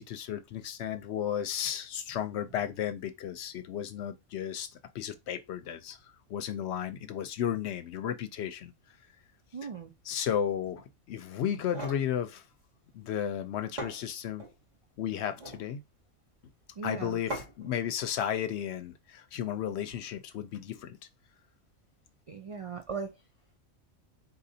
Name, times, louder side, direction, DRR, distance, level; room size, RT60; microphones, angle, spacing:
voice 1, 0.0-4.7 4.9-6.0 6.3-8.7 10.0-12.4 12.9-14.5 15.0-15.8 16.8-21.0, left 9 dB, 65° left, 0.8 m, -34 dB
voice 2, 9.5-9.9 16.8-17.2 22.3-23.1, right 5 dB, 60° right, 0.3 m, -38 dB
sound 1, 11.5-12.1 13.3-13.4 13.8-14.6 15.2-15.7 17.3-17.7, right 1 dB, 35° right, 2.3 m, -40 dB
4.2 x 4.0 x 2.7 m
omnidirectional pair, 1.3 m